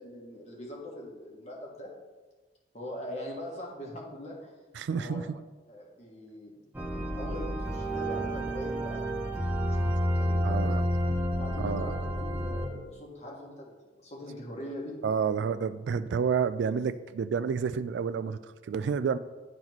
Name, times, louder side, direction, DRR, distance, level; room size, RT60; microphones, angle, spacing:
voice 1, 0.0-1.9 2.7-4.5 4.9-5.2 5.7-6.5 7.2-10.8 11.4-15.0, left 1 dB, 40° left, -2 dB, 1.5 m, -42 dB
voice 2, 4.8-5.4 10.4-10.8 11.6-12.0 15.0-19.2, right 6 dB, 75° right, 14 dB, 0.3 m, -30 dB
sound 1, 6.7-12.7, equal, 10° right, 0.7 m, -30 dB
10.5 x 4.0 x 3.0 m, 1.2 s
head